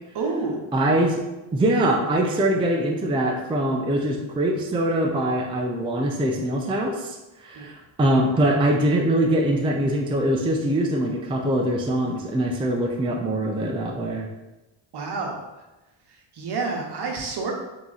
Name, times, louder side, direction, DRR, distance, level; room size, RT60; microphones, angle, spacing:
voice 1, 0.1-0.7 7.5-7.7 14.9-15.4 16.3-17.5, right 4 dB, 55° right, 0 dB, 1.0 m, -28 dB
voice 2, 0.7-1.2 1.5-7.7 8.0-14.3, right 1 dB, 10° right, 0 dB, 0.4 m, -23 dB
3.6 x 3.0 x 3.9 m, 1.0 s
cardioid pair, 105°, 47 cm